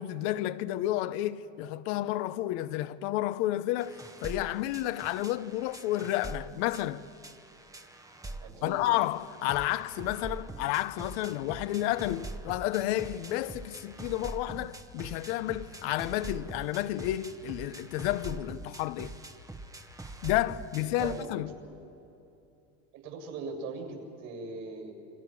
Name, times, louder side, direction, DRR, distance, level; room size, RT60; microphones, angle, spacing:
voice 1, 0.0-7.0 8.6-19.1 20.2-21.5, left 14 dB, 75° left, 1.0 m, -31 dB
sound 1, 3.8-21.3, right 2 dB, 10° right, 1.1 m, -44 dB
voice 2, 8.4-8.8 20.8-21.3 21.6-21.8 22.9-24.9, right 4 dB, 70° right, 7.6 m, -40 dB
28.0 x 25.5 x 6.2 m
supercardioid pair, 120°, 33 cm